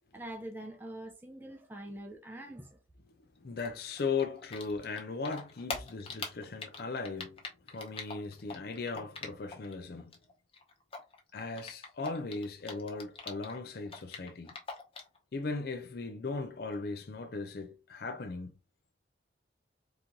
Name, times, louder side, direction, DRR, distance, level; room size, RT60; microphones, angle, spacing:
voice 1, 0.1-2.8, right 1 dB, 10° right, 0.6 m, -44 dB
voice 2, 3.4-7.4 7.7-10.2 11.3-14.6 15.3-18.5, left 4 dB, 55° left, 0.5 m, -37 dB
Typing, 3.6-5.0 5.2-9.7 10.0-13.6 13.8-15.2, left 4 dB, 30° left, 0.9 m, -42 dB
4.0 x 3.0 x 3.7 m
head